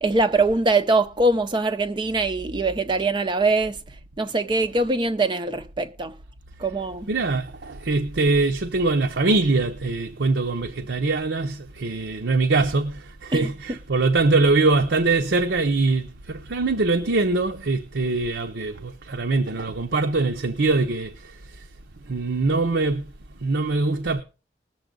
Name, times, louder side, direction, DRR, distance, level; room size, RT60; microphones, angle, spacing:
voice 1, 0.0-3.8 4.2-6.1 6.6-7.1 13.3-13.5, right 2 dB, 25° right, 0.5 m, -22 dB
voice 2, 7.1-21.7 22.0-23.1 23.4-24.2, right 3 dB, 80° right, 0.7 m, -23 dB
20.0 x 7.0 x 3.8 m
head